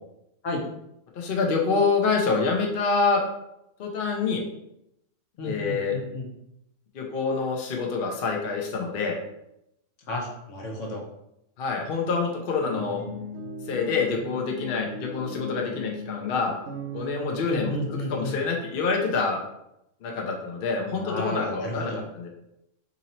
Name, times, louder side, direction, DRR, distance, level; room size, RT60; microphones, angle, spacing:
voice 1, 1.2-3.2 3.8-4.4 5.4-6.0 6.9-9.2 11.6-13.0 13.7-16.5 16.9-19.4 20.0-22.3, left 4 dB, 55° left, 1 dB, 0.7 m, -26 dB
voice 2, 5.4-6.3 10.1-11.0 17.4-18.4 20.9-22.0, left 1 dB, 75° left, 0 dB, 1.1 m, -32 dB
sound 1, 12.5-18.0, right 1 dB, 65° right, 0.8 m, -38 dB
2.8 x 2.7 x 4.1 m, 0.82 s
omnidirectional pair, 1.3 m